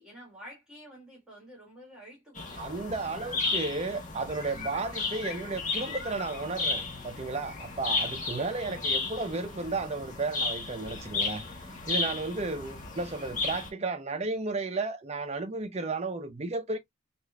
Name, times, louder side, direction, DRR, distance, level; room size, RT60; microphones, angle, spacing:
voice 1, 0.0-3.3, equal, 5° right, 1.5 m, -50 dB
sound 1, 2.3-13.7, left 3 dB, 35° left, 1.0 m, -34 dB
voice 2, 2.6-11.4 11.9-16.8, right 3 dB, 30° right, 0.6 m, -33 dB
4.9 x 2.5 x 2.3 m
head